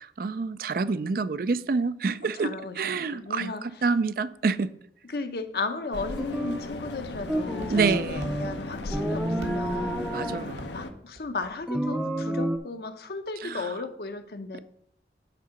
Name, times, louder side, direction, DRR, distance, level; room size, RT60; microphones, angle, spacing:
voice 1, 0.0-4.7 7.7-8.3 10.1-10.7 13.4-13.8 14.5-14.6, right 4 dB, 55° right, 14 dB, 0.4 m, -28 dB
voice 2, 2.4-3.6 5.1-10.2 10.7-14.6, left 3 dB, 60° left, 8 dB, 0.7 m, -35 dB
sound 1, 5.9-10.9, left 2 dB, 90° left, 0.9 m, -37 dB
sound 2, 6.2-6.7 7.3-8.6 8.9-10.5 11.7-12.6, right 1 dB, 5° right, 0.6 m, -29 dB
Walk footsteps, 6.2-12.4, right 1 dB, 80° right, 1.5 m, -48 dB
9.0 x 3.8 x 5.7 m, 0.72 s
head